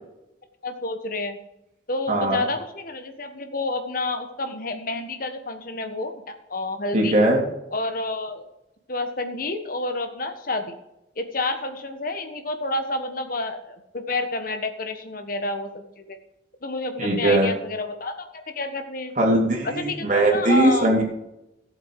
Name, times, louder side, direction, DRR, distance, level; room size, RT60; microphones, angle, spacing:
voice 1, 0.6-1.4 1.9-7.2 7.7-8.4 8.9-10.8 11.2-16.2 16.6-19.1 19.6-20.9, left 2 dB, 55° left, 7 dB, 1.4 m, -29 dB
voice 2, 2.1-2.4 6.9-7.4 17.0-17.5 19.2-21.0, right 1 dB, 45° right, -1 dB, 3.2 m, -20 dB
14.0 x 8.2 x 4.8 m, 0.88 s
head